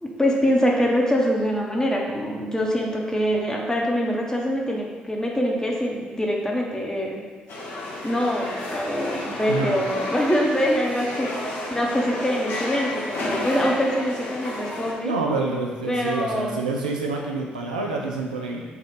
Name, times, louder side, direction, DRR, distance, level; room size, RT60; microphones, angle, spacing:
voice 1, 0.0-7.2 8.0-11.3 11.7-15.2 15.9-16.6, equal, 15° left, -1 dB, 0.9 m, -24 dB
sound 1, 7.5-14.9, left 1 dB, 60° left, 0.8 m, -31 dB
voice 2, 9.5-9.8 15.0-18.6, right 3 dB, 90° right, -1 dB, 0.3 m, -27 dB
3.5 x 2.4 x 4.0 m, 1.4 s
hypercardioid pair, 40°, 4 cm